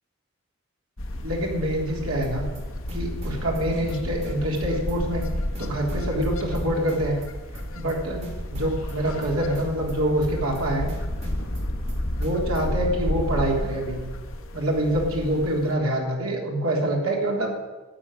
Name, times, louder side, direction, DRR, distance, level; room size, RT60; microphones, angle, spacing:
sound 1, 1.0-15.7, left 1 dB, 75° left, 1.6 m, -31 dB
voice 1, 1.2-2.5 2.9-5.2 5.6-7.2 7.7-8.3 8.5-10.9 12.2-14.1 14.5-17.5, right 1 dB, 85° right, -1 dB, 3.5 m, -25 dB
sound 2, 2.2-2.6 2.9-4.6 4.9-5.3 5.5-7.3 7.5-7.9 8.2-9.9 10.2-10.6 10.9-12.6, equal, 30° right, 2.9 m, -40 dB
12.5 x 7.1 x 9.7 m, 1.2 s
head